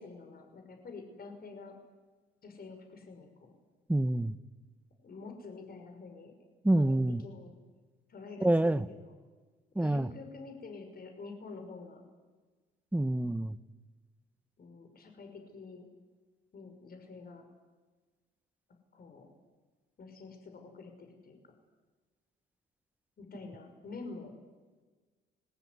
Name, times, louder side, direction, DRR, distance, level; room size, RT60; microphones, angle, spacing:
voice 1, 0.0-1.8 2.4-3.5 5.0-6.3 6.7-7.5 8.1-9.1 9.8-12.0 14.6-15.9 16.5-17.4 18.9-19.3 20.0-21.4 23.2-24.4, left 4 dB, 50° left, 5 dB, 6.0 m, -47 dB
voice 2, 3.9-4.4 6.6-7.2 8.4-8.9 9.7-10.1 12.9-13.6, right 1 dB, 10° right, 15 dB, 1.0 m, -27 dB
29.5 x 21.0 x 9.7 m, 1.3 s
cardioid pair, 90°, 20 cm